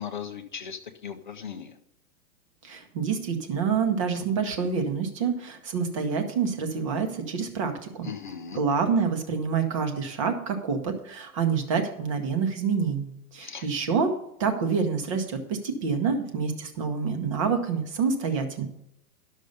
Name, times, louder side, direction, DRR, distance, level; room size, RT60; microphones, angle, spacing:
voice 1, 0.0-1.8 8.0-8.6 13.4-13.7, left 7 dB, 30° left, 7 dB, 0.5 m, -38 dB
voice 2, 2.6-8.1 8.5-18.7, right 5 dB, 20° right, 6 dB, 0.8 m, -27 dB
11.5 x 6.6 x 5.3 m, 0.77 s
hypercardioid pair, 175°, 47 cm